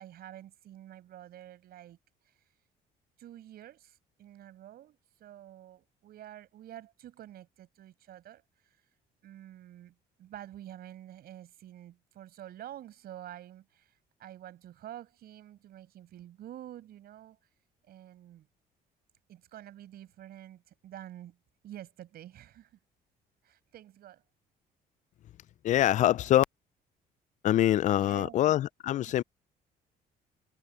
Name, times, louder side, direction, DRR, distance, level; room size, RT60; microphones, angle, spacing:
voice 1, 0.0-2.0 2.3-2.4 3.2-8.8 9.2-17.4 17.9-18.5 19.3-21.4 21.6-22.8 23.4-24.2 27.9-28.5, right 12 dB, 65° right, 7.1 m, -48 dB
voice 2, 25.6-26.5 27.4-29.2, left 12 dB, 45° left, 0.4 m, -24 dB
cardioid pair, 110°, 17 cm